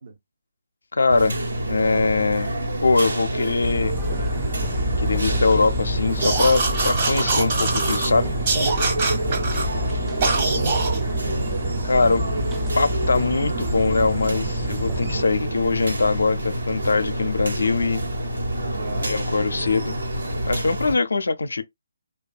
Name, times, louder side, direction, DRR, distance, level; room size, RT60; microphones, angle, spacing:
voice 1, 0.9-1.4 1.7-2.5 2.8-3.9 5.0-8.3 11.8-12.3 12.8-18.0 18.9-20.0 20.4-21.6, left 3 dB, 80° left, 0.4 m, -22 dB
sound 1, 1.1-20.9, right 1 dB, 80° right, 1.1 m, -27 dB
sound 2, 3.6-15.2, right 1 dB, 10° right, 0.4 m, -29 dB
sound 3, 6.2-8.1 8.5-9.7 10.2-11.0, right 3 dB, 35° right, 1.0 m, -23 dB
voice 2, 9.3-10.6 12.0-12.5 12.8-13.0 18.8-19.1, right 4 dB, 60° right, 0.7 m, -39 dB
2.7 x 2.3 x 2.3 m
figure-of-eight pair, 150°, 0 cm